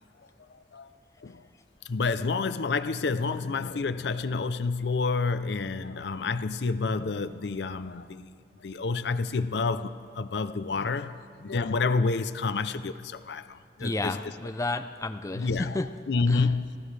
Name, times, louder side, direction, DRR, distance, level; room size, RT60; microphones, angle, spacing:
voice 1, 0.5-0.9 1.2-1.4 1.8-8.3 8.6-14.3 15.3-16.8, left 4 dB, 70° left, 12 dB, 0.6 m, -29 dB
voice 2, 13.8-15.9 16.3-16.4, left 2 dB, 20° left, 8 dB, 0.5 m, -31 dB
25.0 x 16.0 x 3.3 m, 2.2 s
head